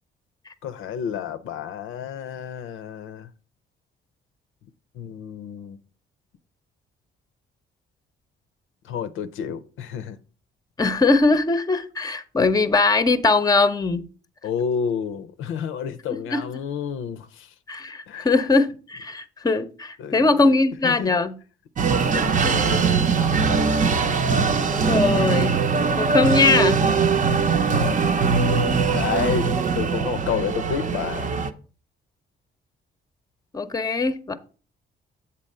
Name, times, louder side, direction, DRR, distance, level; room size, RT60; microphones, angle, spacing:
voice 1, 0.6-3.3 4.9-5.8 8.8-10.2 14.4-17.5 18.1-18.4 20.0-20.6 20.8-21.1 22.1-23.5 27.6-28.1 28.9-31.3, left 8 dB, 85° left, 0.6 m, -30 dB
voice 2, 10.8-14.0 16.3-16.4 17.7-21.3 24.7-25.6 26.0-26.8 33.5-34.3, left 3 dB, 20° left, 0.6 m, -21 dB
sound 1, 21.8-31.5, right 5 dB, 40° right, 0.7 m, -21 dB
7.5 x 4.1 x 5.3 m
cardioid pair, 90°, 20 cm